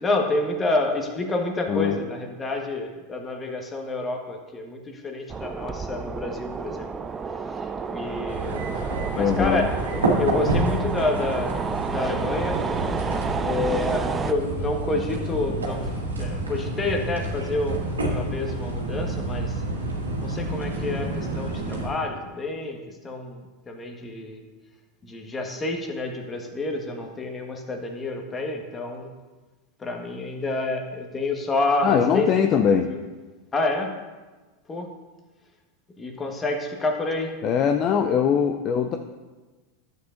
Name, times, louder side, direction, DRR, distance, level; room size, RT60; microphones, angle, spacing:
voice 1, 0.0-6.9 7.5-8.6 9.1-9.6 10.2-12.6 13.4-15.9 16.2-19.6 20.2-24.4 25.0-29.1 29.8-32.3 32.9-33.0 33.5-34.0 34.7-34.9 36.0-37.4, left 2 dB, 20° left, 3 dB, 1.4 m, -28 dB
sound 1, 5.3-14.3, right 5 dB, 20° right, 0.4 m, -30 dB
sound 2, 8.3-21.9, right 1 dB, 90° right, 1.6 m, -29 dB
voice 2, 9.2-9.6 31.8-32.9 37.4-39.0, left 7 dB, 40° left, 5 dB, 0.5 m, -21 dB
11.5 x 7.9 x 2.6 m, 1.3 s
hypercardioid pair, 90°, 0 cm